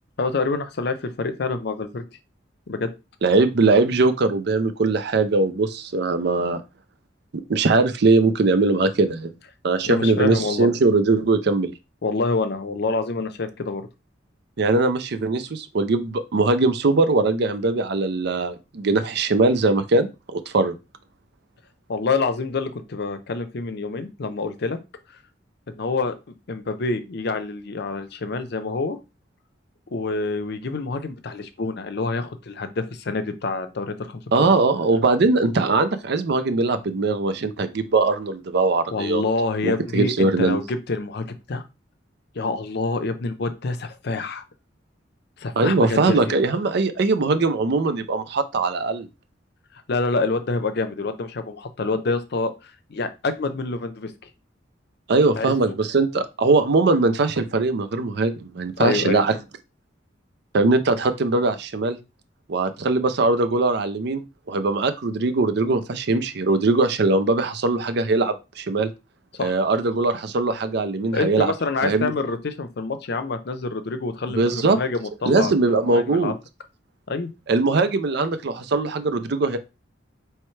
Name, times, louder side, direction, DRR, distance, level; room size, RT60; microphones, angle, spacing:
voice 1, 0.2-2.1 2.7-2.9 9.8-10.7 12.0-13.9 21.9-24.8 25.7-26.2 26.5-29.0 29.9-34.5 38.9-41.6 42.3-44.4 45.4-46.2 49.9-54.3 55.4-55.5 58.8-59.2 69.3-69.6 71.1-76.4 77.1-77.3, left 3 dB, 60° left, 10 dB, 0.6 m, -27 dB
voice 2, 3.2-6.6 7.3-9.3 9.6-11.7 14.6-20.7 34.3-39.2 39.6-40.6 45.6-49.1 55.1-59.3 60.5-62.0 62.5-68.9 69.4-71.5 71.8-72.1 74.3-74.8 75.3-76.3 77.5-79.6, right 3 dB, 65° right, 10 dB, 0.5 m, -21 dB
4.5 x 3.1 x 3.2 m, 0.27 s
head